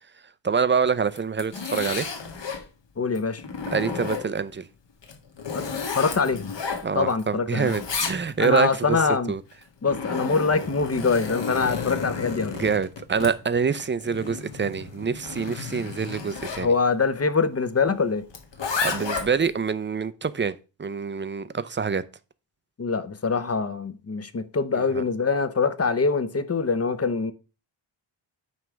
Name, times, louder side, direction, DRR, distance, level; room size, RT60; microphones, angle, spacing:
voice 1, 0.4-2.1 3.7-4.7 6.8-9.0 9.3-9.4 12.5-16.7 18.8-22.0 24.7-24.8, right 6 dB, 25° right, 0.4 m, -26 dB
Zipper (clothing), 1.0-2.6 3.2-4.5 5.0-7.2 7.5-8.6 9.5-16.7 18.3-19.5, left 5 dB, 55° left, 1.8 m, -32 dB
voice 2, 3.0-3.4 5.5-6.4 6.9-7.7 8.4-9.3 9.8-12.6 16.6-18.2 22.8-27.3, left 4 dB, 30° left, 0.7 m, -24 dB
9.3 x 3.4 x 6.2 m
wide cardioid pair, 155°, 50 cm